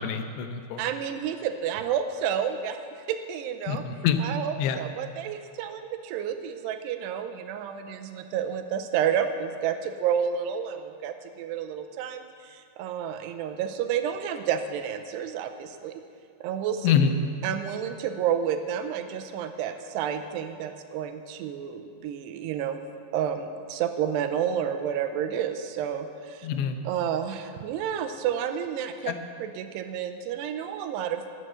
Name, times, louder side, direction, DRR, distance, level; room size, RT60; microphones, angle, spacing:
voice 1, 0.0-0.9 3.7-4.2 4.6-4.8 16.8-17.1 26.4-26.8 29.1-29.2, left 8 dB, 85° left, 8 dB, 2.9 m, -25 dB
voice 2, 0.8-2.8 3.1-3.8 4.2-16.0 16.4-16.9 17.4-22.8 23.1-26.5 26.9-29.1 29.4-31.2, right 8 dB, 90° right, 8 dB, 2.8 m, -30 dB
12.5 x 8.1 x 7.5 m, 2.3 s
omnidirectional pair, 4.8 m